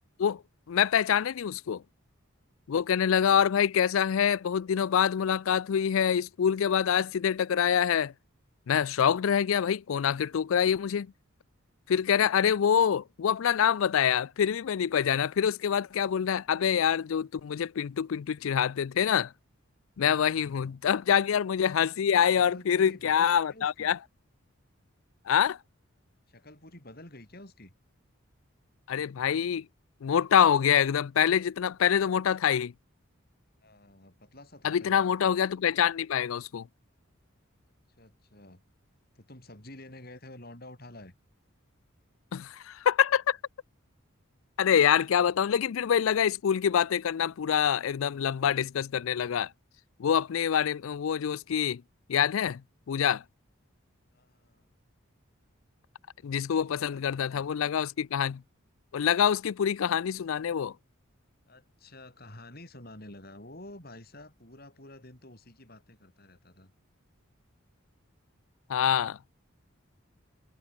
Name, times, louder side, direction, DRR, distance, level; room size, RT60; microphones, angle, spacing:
voice 1, 0.7-1.8 2.7-8.1 8.7-11.1 11.9-19.3 20.0-24.0 25.3-25.6 28.9-29.6 30.0-32.7 34.6-36.7 42.3-43.4 44.6-49.5 50.0-51.8 52.1-52.6 52.9-53.2 56.2-58.4 58.9-60.7 68.7-69.2, left 8 dB, 80° left, 0.4 m, -25 dB
voice 2, 20.4-20.8 22.3-23.9 26.3-27.7 33.6-35.0 38.0-38.6 39.2-41.1 54.1-54.7 56.4-57.5 61.4-66.7, left 1 dB, 45° left, 5.3 m, -49 dB
head